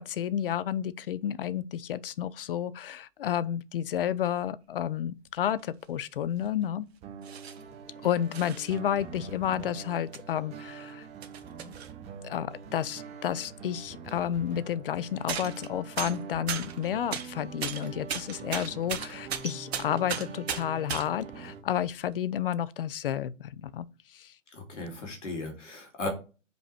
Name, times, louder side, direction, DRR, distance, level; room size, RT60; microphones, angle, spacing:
voice 1, 0.0-6.9 8.0-11.1 12.2-24.3, left 10 dB, 45° left, 0.5 m, -31 dB
sound 1, 5.6-5.7 6.4-6.6 7.2-7.7 8.3-8.8 9.5-9.6 10.1-10.2 10.6-11.9 13.5-13.6 13.7-13.9 15.3-15.7 16.0-17.3 17.6-21.1 21.9-22.1, right 7 dB, 55° right, 1.3 m, -36 dB
sound 2, 7.0-21.6, right 6 dB, 15° right, 0.8 m, -44 dB
voice 2, 24.5-26.1, left 2 dB, 70° left, 2.6 m, -36 dB
5.2 x 4.9 x 4.3 m
figure-of-eight pair, 125°, 38 cm